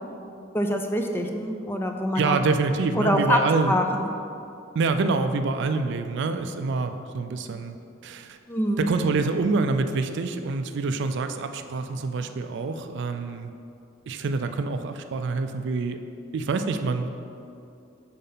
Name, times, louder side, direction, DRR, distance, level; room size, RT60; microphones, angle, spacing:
voice 1, 0.5-2.4 3.0-3.4 3.7-4.0 8.5-8.9, equal, 10° left, 4 dB, 0.4 m, -24 dB
voice 2, 2.1-3.8 4.7-7.8 8.0-8.4 8.8-13.5 14.1-16.0 16.3-17.1, right 3 dB, 60° right, 8 dB, 0.3 m, -26 dB
5.6 x 4.3 x 5.5 m, 2.6 s
head